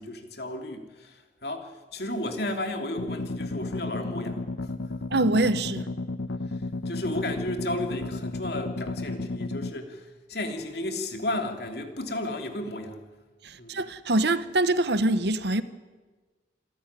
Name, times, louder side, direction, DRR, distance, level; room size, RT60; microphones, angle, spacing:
voice 1, 0.0-4.9 6.5-13.0 13.6-13.8, left 1 dB, 55° left, 2.9 m, -33 dB
sound 1, 3.0-9.7, left 2 dB, 90° left, 0.9 m, -33 dB
voice 2, 5.1-5.9 13.4-15.6, right 2 dB, 60° right, 1.0 m, -24 dB
27.5 x 13.0 x 9.9 m
head